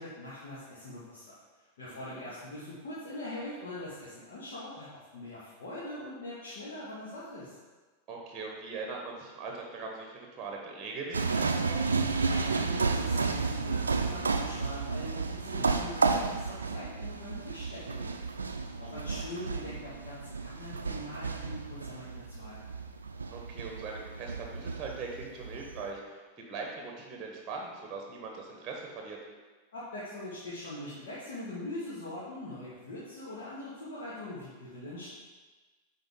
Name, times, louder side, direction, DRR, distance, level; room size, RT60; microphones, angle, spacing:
voice 1, 0.0-1.3 1.8-7.5 12.2-18.2 18.8-22.6 29.7-35.1, left 1 dB, 60° left, -10 dB, 1.8 m, -42 dB
voice 2, 1.8-2.3 8.1-11.9 18.8-19.2 23.3-29.2, right 4 dB, 25° right, 0 dB, 1.2 m, -41 dB
sound 1, 11.1-25.9, right 4 dB, 75° right, 0.4 m, -32 dB
9.3 x 4.1 x 3.8 m, 1.3 s
figure-of-eight pair, 90°, 0 cm